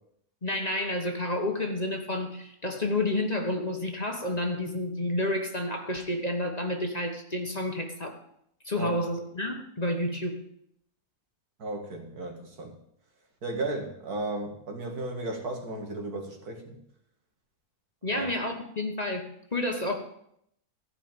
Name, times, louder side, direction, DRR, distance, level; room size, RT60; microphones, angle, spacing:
voice 1, 0.4-8.2 8.6-10.4 18.0-20.0, left 1 dB, 30° left, 3 dB, 1.3 m, -30 dB
voice 2, 11.6-12.8 13.4-16.8 18.1-18.3, right 2 dB, 80° right, 3 dB, 2.4 m, -35 dB
15.0 x 5.6 x 9.0 m, 0.73 s
omnidirectional pair, 1.6 m